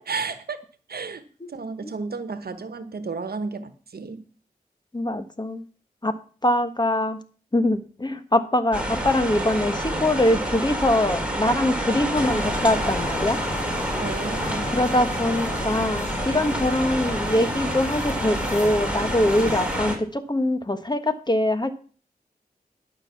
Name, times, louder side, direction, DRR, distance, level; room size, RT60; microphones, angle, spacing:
voice 1, 0.1-0.6 0.9-1.2 1.5-4.2 14.0-14.7, right 4 dB, 80° right, 11 dB, 1.1 m, -32 dB
voice 2, 4.9-5.6 6.0-6.1 6.4-7.2 7.5-13.4 14.7-21.7, left 1 dB, 25° left, 10 dB, 1.4 m, -23 dB
sound 1, 8.7-20.0, right 1 dB, 5° right, 3.5 m, -28 dB
sound 2, 12.1-20.0, left 3 dB, 50° left, 1.2 m, -35 dB
12.0 x 6.5 x 5.9 m, 0.41 s
cardioid pair, 45°, 16 cm